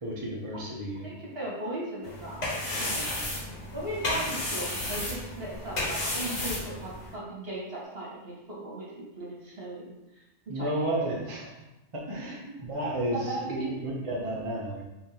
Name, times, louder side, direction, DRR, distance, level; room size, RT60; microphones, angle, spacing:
voice 1, 0.0-1.1 10.5-11.5 11.9-13.2 13.5-14.8, right 1 dB, 30° right, -4 dB, 0.7 m, -32 dB
voice 2, 1.0-2.4 2.8-3.0 3.7-9.9 10.5-11.0 12.2-12.6 13.1-13.7, right 1 dB, 55° right, -5 dB, 1.5 m, -37 dB
sound 1, 2.0-7.1, left 1 dB, 80° left, 1.6 m, -33 dB
5.7 x 3.2 x 2.8 m, 0.96 s
omnidirectional pair, 1.2 m